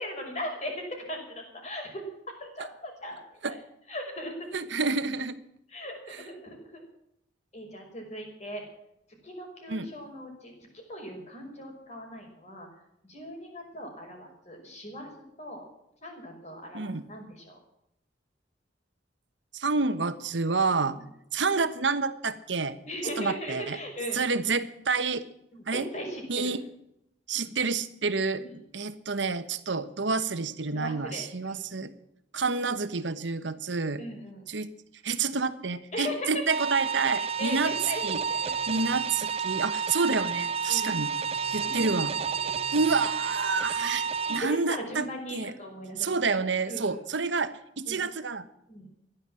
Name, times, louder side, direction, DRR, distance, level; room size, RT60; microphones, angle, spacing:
voice 1, 0.0-2.0 2.4-3.6 3.9-4.6 5.7-6.9 7.5-8.6 9.2-12.7 13.0-15.1 15.4-15.6 16.0-17.6 20.9-21.0 22.9-24.2 25.5-26.5 27.4-27.5 28.4-28.5 30.7-31.9 34.0-34.5 35.9-36.4 37.1-38.0 38.3-38.9 40.7-41.0 41.6-41.9 42.4-42.6 44.4-46.1 46.7-47.0 47.9-48.0 48.7-48.9, equal, 40° left, 2 dB, 5.8 m, -39 dB
voice 2, 4.5-5.4 9.7-9.9 16.7-17.0 19.5-21.0 21.3-22.7 23.2-23.8 24.1-25.2 25.7-25.9 26.3-26.6 27.3-31.9 32.3-34.0 34.5-34.7 35.0-37.7 38.0-38.2 38.7-41.1 41.5-42.1 42.7-44.0 44.3-45.0 45.3-45.5 46.0-48.4, right 4 dB, 80° right, 12 dB, 1.2 m, -28 dB
sound 1, 36.5-44.4, right 6 dB, 35° right, 0.5 m, -30 dB
16.0 x 11.5 x 7.6 m, 0.79 s
head